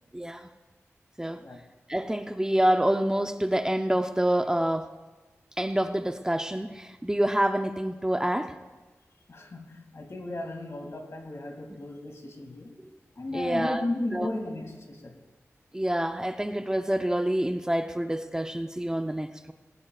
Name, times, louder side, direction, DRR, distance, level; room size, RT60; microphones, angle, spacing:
voice 1, 0.1-0.5 1.2-1.4 1.9-4.9 5.6-8.6 13.3-13.8 14.1-14.3 15.7-19.5, right 1 dB, 10° right, 7 dB, 0.7 m, -27 dB
voice 2, 9.3-12.7 13.2-15.2, left 2 dB, 60° left, 2 dB, 2.7 m, -35 dB
19.5 x 19.0 x 2.5 m, 1.2 s
cardioid pair, 50°, 5 cm